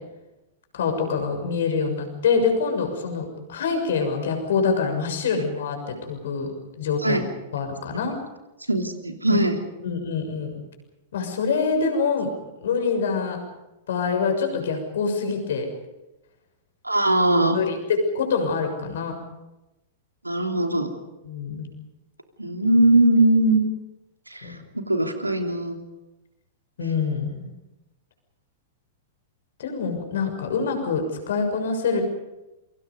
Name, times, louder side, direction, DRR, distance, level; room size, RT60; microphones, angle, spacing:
voice 1, 0.7-6.5 6.8-7.2 7.5-8.1 9.3-9.4 9.8-10.5 11.1-12.3 12.6-13.4 13.9-15.7 17.5-19.2 21.2-21.7 24.4-24.6 26.8-27.5 29.6-32.0, left 5 dB, 60° left, 5 dB, 6.7 m, -25 dB
voice 2, 8.7-9.6 16.8-17.6 20.2-20.9 22.4-23.7 24.3-25.8, right 1 dB, 85° right, 4 dB, 3.0 m, -20 dB
28.0 x 24.5 x 5.4 m, 1.0 s
figure-of-eight pair, 100°, 0 cm